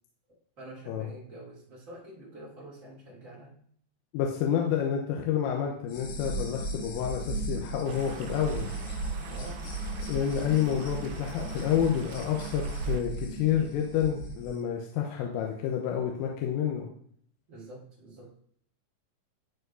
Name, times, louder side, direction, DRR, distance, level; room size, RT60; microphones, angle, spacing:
voice 1, 0.3-3.6 9.2-9.6 17.5-18.3, right 1 dB, 70° right, -7 dB, 0.7 m, -47 dB
voice 2, 4.1-8.7 10.1-16.9, left 9 dB, 85° left, 0 dB, 3.4 m, -29 dB
sound 1, 5.9-14.5, right 2 dB, 60° left, 3.1 m, -36 dB
sound 2, 7.9-13.0, right 7 dB, 85° right, 2.6 m, -47 dB
12.5 x 4.7 x 2.6 m, 0.62 s
omnidirectional pair, 5.9 m